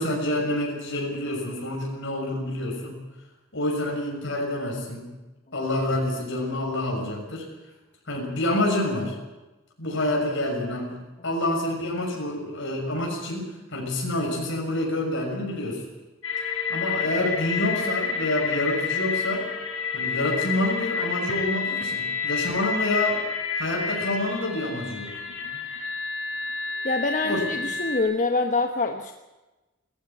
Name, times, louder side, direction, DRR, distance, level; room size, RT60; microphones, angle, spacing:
voice 1, 0.0-3.0 3.5-5.1 5.5-7.4 8.1-9.1 9.8-11.0 11.2-15.8 16.7-19.5 19.9-23.2 23.6-25.1 27.2-27.4, left 1 dB, 65° left, -1 dB, 6.6 m, -27 dB
sound 1, 16.2-28.0, left 5 dB, 85° left, 6.1 m, -29 dB
voice 2, 26.8-29.1, left 3 dB, 40° left, 5 dB, 1.2 m, -25 dB
18.5 x 14.5 x 10.0 m, 1.1 s
head